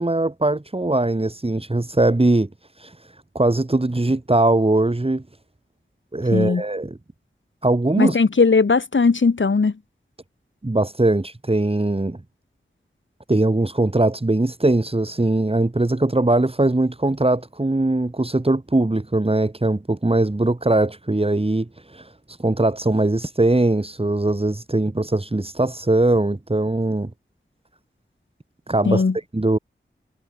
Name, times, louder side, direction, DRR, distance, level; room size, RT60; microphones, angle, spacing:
voice 1, 0.0-2.5 2.8-2.9 3.4-5.2 6.1-7.0 7.6-8.2 10.6-12.2 13.3-22.1 22.4-27.1 28.7-29.0 29.3-29.6, right 2 dB, 30° right, 5.3 m, -20 dB
voice 2, 6.3-6.6 8.0-9.7 28.9-29.2, left 4 dB, 70° left, 4.3 m, -18 dB
wide cardioid pair, 65°, 20 cm